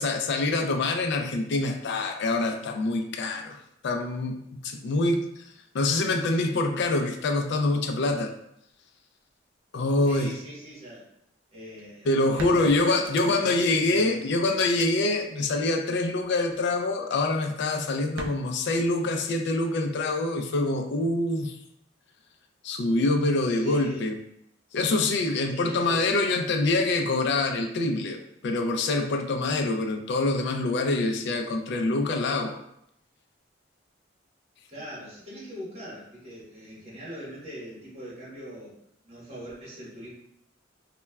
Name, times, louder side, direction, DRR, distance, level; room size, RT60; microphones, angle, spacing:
voice 1, 0.0-5.3 5.7-8.3 9.7-10.3 12.1-21.6 22.6-24.2 24.7-32.6, left 2 dB, 65° left, 5 dB, 0.3 m, -25 dB
voice 2, 10.0-11.1 11.5-14.2 23.5-24.1 25.5-26.3 34.7-38.8 39.0-40.1, equal, 35° right, -7 dB, 1.2 m, -42 dB
sound 1, 11.8-11.9 12.4-13.6 14.0-14.1 14.6-14.9 16.2-16.7 18.2-18.3, right 2 dB, 85° right, 0.4 m, -38 dB
3.1 x 2.2 x 2.2 m, 0.75 s
head